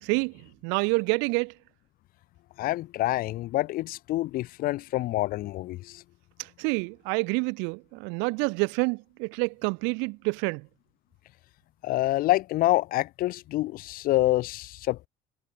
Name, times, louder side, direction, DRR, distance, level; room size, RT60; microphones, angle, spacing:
voice 1, 0.0-1.5 6.4-10.7, right 32 dB, 90° right, 0.7 m, -28 dB
voice 2, 2.6-6.0 11.8-15.1, left 16 dB, 50° left, 0.5 m, -27 dB
cardioid pair, 140°, 19 cm